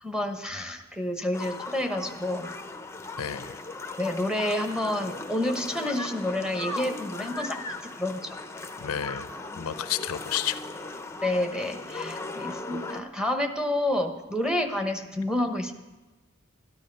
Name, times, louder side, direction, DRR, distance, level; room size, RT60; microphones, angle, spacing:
voice 1, 0.0-2.5 4.0-8.4 11.2-15.7, left 1 dB, 5° right, 4 dB, 1.0 m, -29 dB
sound 1, 1.3-13.0, left 3 dB, 10° left, 0.6 m, -38 dB
voice 2, 3.2-3.6 8.8-10.6, left 10 dB, 85° left, 13 dB, 0.6 m, -31 dB
12.5 x 11.0 x 5.3 m, 1.2 s
head